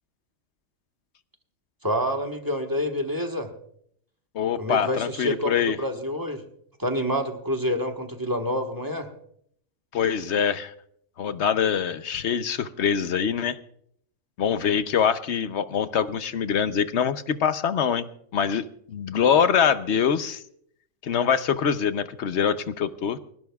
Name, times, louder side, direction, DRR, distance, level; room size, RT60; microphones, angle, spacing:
voice 1, 1.8-3.5 4.6-6.4 6.8-9.1, equal, 15° right, 5 dB, 1.3 m, -27 dB
voice 2, 4.3-5.8 9.9-10.7 11.2-13.6 14.4-20.4 21.0-23.2, left 7 dB, 60° left, 12 dB, 1.0 m, -24 dB
29.5 x 12.0 x 2.3 m, 0.69 s
omnidirectional pair, 1.4 m